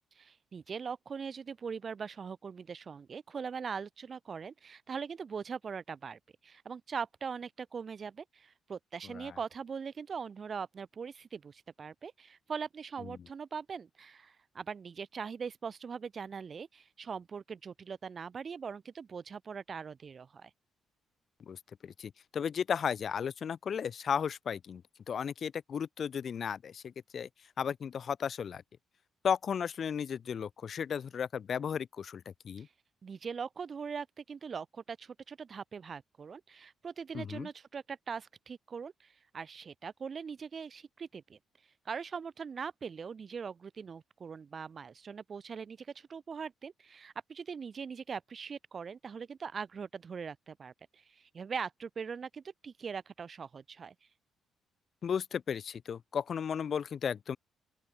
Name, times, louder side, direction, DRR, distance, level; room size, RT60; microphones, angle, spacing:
voice 1, 0.2-20.5 32.6-32.7 33.0-41.4 41.8-53.9, right 6 dB, 45° right, 1.2 m, -41 dB
voice 2, 21.5-27.3 27.6-28.6 29.2-32.7 37.1-37.5 55.0-57.4, left 7 dB, 50° left, 0.9 m, -35 dB
open air
cardioid pair, 90°, 0 cm